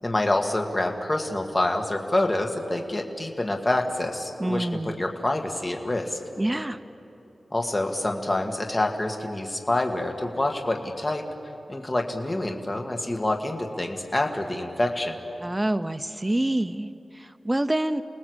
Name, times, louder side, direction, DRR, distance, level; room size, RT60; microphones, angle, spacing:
voice 1, 0.0-6.2 7.5-11.2 11.7-15.2, left 1 dB, 25° left, 3 dB, 1.8 m, -27 dB
voice 2, 4.4-5.0 6.4-6.8 15.4-18.0, right 1 dB, 15° right, 10 dB, 0.6 m, -27 dB
29.0 x 19.0 x 8.0 m, 2.9 s
wide cardioid pair, 120°, 0 cm